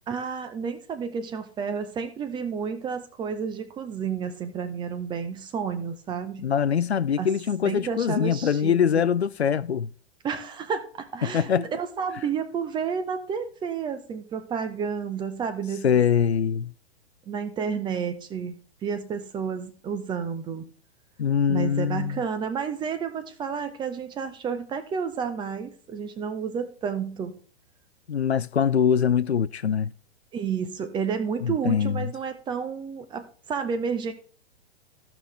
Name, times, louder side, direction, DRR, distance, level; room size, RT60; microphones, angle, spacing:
voice 1, 0.1-6.5 7.2-7.3 7.6-9.1 10.2-16.0 17.3-18.6 18.8-20.6 21.5-27.3 30.3-34.1, right 6 dB, 15° right, 0.8 m, -31 dB
voice 2, 6.4-9.9 11.2-11.7 15.8-16.7 21.2-22.2 28.1-29.9 31.4-32.1, left 7 dB, 80° left, 0.5 m, -23 dB
14.5 x 6.0 x 3.3 m
figure-of-eight pair, 110°, 32 cm